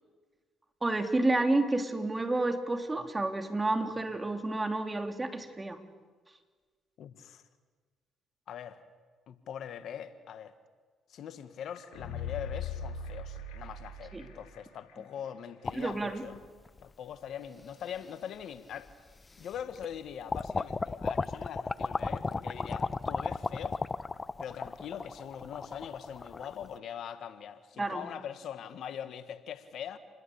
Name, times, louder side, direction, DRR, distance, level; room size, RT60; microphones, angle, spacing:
voice 1, 0.8-5.8 14.1-14.3 15.7-16.3 27.8-28.1, right 2 dB, 20° right, 5 dB, 3.4 m, -30 dB
voice 2, 7.0-7.4 8.5-8.8 9.3-10.5 11.1-16.4 16.8-18.9 19.4-23.8 24.4-30.0, left 9 dB, 65° left, 11 dB, 1.5 m, -42 dB
sound 1, 11.7-14.6 14.9-15.0, left 4 dB, 80° left, 4.3 m, -39 dB
sound 2, 15.6-16.8 17.6-17.7 18.9-19.0 19.4-20.0 20.3-26.8, left 3 dB, 30° left, 0.9 m, -35 dB
28.0 x 20.5 x 8.6 m, 1.5 s
hypercardioid pair, 55°, 0 cm